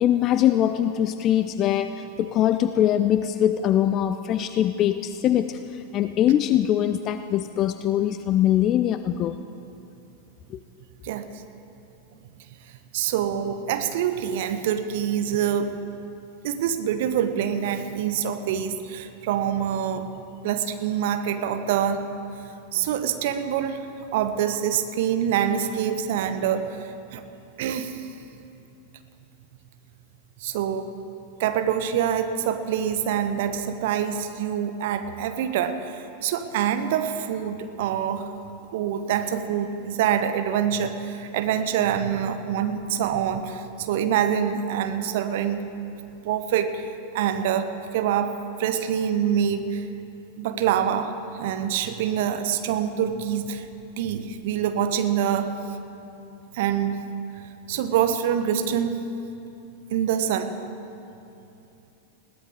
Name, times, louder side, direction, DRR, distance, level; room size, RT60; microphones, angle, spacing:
voice 1, 0.0-5.6 5.9-9.4, left 11 dB, 35° left, 11 dB, 0.5 m, -22 dB
voice 2, 12.9-15.7 16.4-20.1 20.4-22.0 22.7-23.8 24.1-26.7 27.1-27.2 27.6-27.9 30.4-30.9 31.4-38.3 38.7-45.6 46.2-46.8 47.1-47.7 47.9-49.8 50.4-53.6 54.0-55.5 56.5-57.0 57.7-59.0 59.9-60.5, right 9 dB, 50° right, 9 dB, 1.1 m, -25 dB
21.0 x 16.5 x 3.7 m, 2.8 s
figure-of-eight pair, 90°, 0 cm